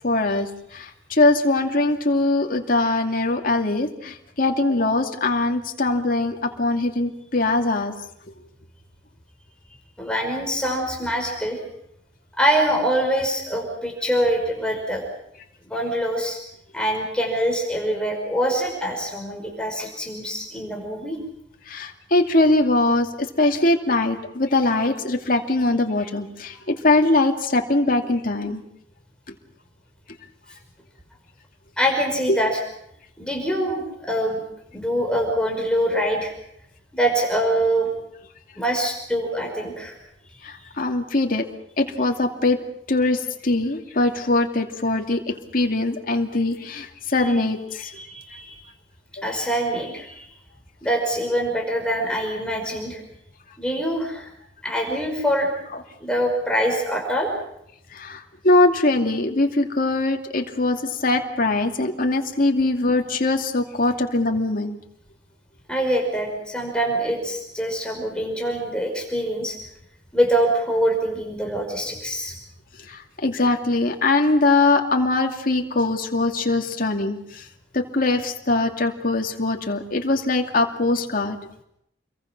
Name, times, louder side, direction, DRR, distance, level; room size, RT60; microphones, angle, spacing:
voice 1, 0.0-7.9 21.7-28.6 32.3-32.4 40.4-41.4 41.8-42.6 42.9-47.9 49.3-49.4 57.9-64.8 72.9-77.4 77.7-81.4, left 2 dB, 50° left, 3 dB, 2.5 m, -22 dB
voice 2, 10.0-11.6 12.4-15.0 15.7-16.4 16.7-21.2 31.8-32.6 33.2-34.4 34.7-36.3 36.9-37.9 38.6-39.9 47.8-48.6 49.2-50.3 50.8-53.0 53.6-54.3 54.6-55.5 56.0-57.3 65.7-69.6 70.1-72.3, equal, 5° left, 1 dB, 5.2 m, -24 dB
28.5 x 23.0 x 6.1 m, 0.77 s
head